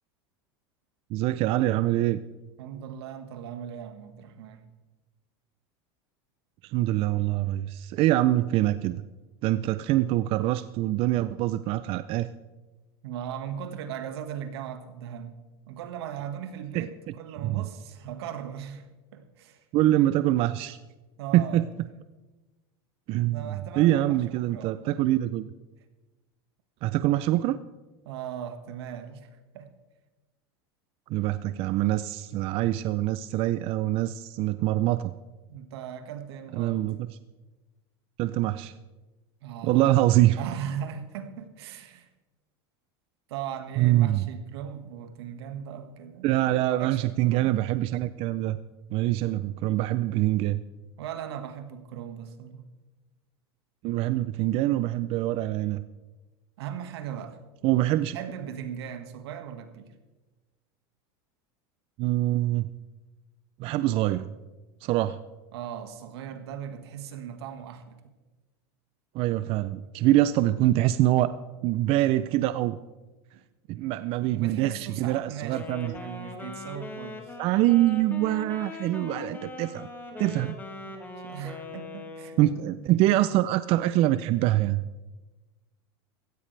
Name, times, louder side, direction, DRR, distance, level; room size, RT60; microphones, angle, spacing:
voice 1, 1.1-2.2 6.6-9.0 9.4-12.3 16.7-16.9 17.4-17.6 19.7-20.8 21.3-21.7 23.1-25.5 26.8-27.6 31.1-35.1 36.5-37.1 38.2-38.7 39.6-40.4 43.8-44.2 46.2-48.6 48.9-50.6 53.8-55.8 57.6-58.2 62.0-62.7 63.6-64.3 64.8-65.2 69.1-71.3 71.6-72.8 73.7-75.9 77.4-79.9 80.2-80.6 82.4-84.8, right 15 dB, 45° right, 14 dB, 0.5 m, -24 dB
voice 2, 2.6-4.6 13.0-15.4 15.7-19.6 21.2-21.6 23.2-25.0 28.0-29.3 29.5-29.7 35.5-36.8 39.4-40.0 40.4-42.1 43.3-47.0 47.3-47.6 51.0-52.7 56.6-57.4 58.1-59.9 65.5-68.0 74.3-77.3 80.3-80.6 80.8-82.4, right 9 dB, 80° right, 8 dB, 1.7 m, -38 dB
Wind instrument woodwind instrument, 75.4-82.6, left 2 dB, 15° left, 2.0 m, -40 dB
16.0 x 15.0 x 3.3 m, 1.2 s
supercardioid pair, 125°, 13 cm